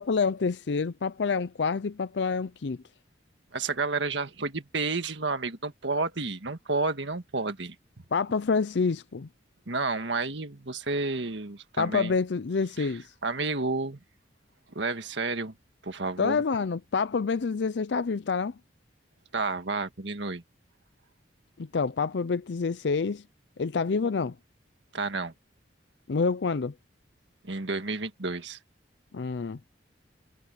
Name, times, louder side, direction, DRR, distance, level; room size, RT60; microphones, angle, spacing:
voice 1, 0.0-2.8 8.1-9.3 11.8-13.1 16.2-18.5 21.6-23.2 23.6-24.3 26.1-26.7 29.1-29.6, left 5 dB, 65° left, 0.5 m, -27 dB
voice 2, 3.5-7.8 9.7-12.1 12.8-12.9 13.2-14.0 14.8-15.5 15.8-16.4 19.3-20.4 24.9-25.3 27.4-28.6, right 3 dB, 75° right, 1.8 m, -31 dB
head